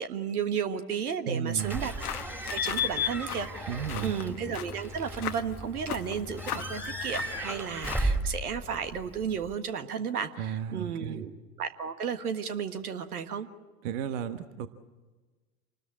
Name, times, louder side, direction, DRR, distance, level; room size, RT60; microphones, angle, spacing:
voice 1, 0.0-1.9 2.5-11.3 11.6-13.5, right 7 dB, 75° right, 9 dB, 1.7 m, -33 dB
voice 2, 1.3-1.8 3.7-4.1 10.4-11.3 13.8-14.7, right 8 dB, 55° right, 10 dB, 1.4 m, -33 dB
Slam / Squeak / Alarm, 1.6-9.5, left 1 dB, 5° right, 2.6 m, -34 dB
sound 1, 1.7-8.2, left 10 dB, 75° left, 1.3 m, -40 dB
28.0 x 20.5 x 8.7 m, 1.3 s
figure-of-eight pair, 80°, 45 cm